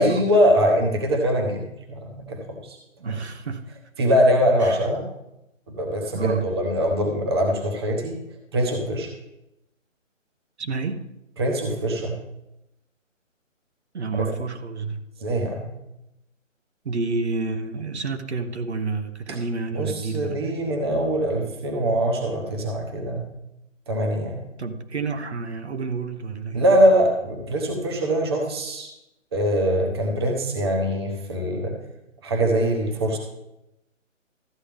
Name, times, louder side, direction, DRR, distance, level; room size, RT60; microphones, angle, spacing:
voice 1, 0.0-2.8 3.0-3.2 4.0-5.0 5.7-8.2 8.5-9.1 11.4-12.1 14.1-14.3 15.2-15.7 19.3-19.4 19.7-23.3 23.9-24.4 26.5-28.9 29.3-31.7 32.2-33.2, equal, 20° right, 2 dB, 1.0 m, -22 dB
voice 2, 3.0-3.8 4.6-4.8 6.1-6.5 10.6-11.0 13.9-15.1 16.8-20.5 24.6-26.6, right 4 dB, 55° right, 7 dB, 1.1 m, -29 dB
13.5 x 8.5 x 3.5 m, 0.88 s
hypercardioid pair, 165°, 39 cm